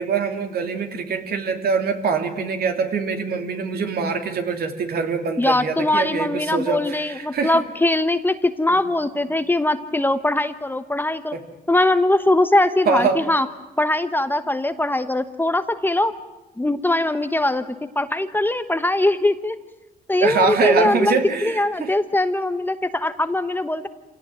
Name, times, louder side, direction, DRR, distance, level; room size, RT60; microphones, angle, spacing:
voice 1, 0.0-7.6 12.9-13.2 20.2-21.9, right 5 dB, 65° right, 5 dB, 2.8 m, -23 dB
voice 2, 5.4-11.3 11.7-13.5 13.8-16.1 16.6-17.7 17.9-19.6 20.1-23.9, left 1 dB, 10° left, 10 dB, 1.1 m, -21 dB
27.0 x 17.5 x 9.2 m, 1.1 s
cardioid pair, 90°, 17 cm